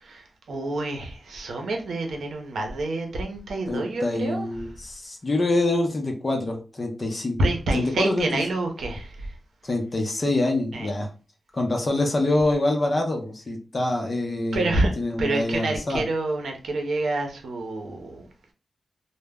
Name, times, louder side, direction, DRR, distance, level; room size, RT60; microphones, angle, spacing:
voice 1, 0.0-4.5 7.4-9.3 10.7-10.9 14.5-14.9 15.2-18.2, right 2 dB, 85° right, 0.6 m, -27 dB
voice 2, 3.7-7.4 7.7-8.3 9.6-11.1 11.5-14.7 15.0-16.0, left 2 dB, 40° left, 0.6 m, -25 dB
2.0 x 2.0 x 3.4 m
cardioid pair, 70°, 0 cm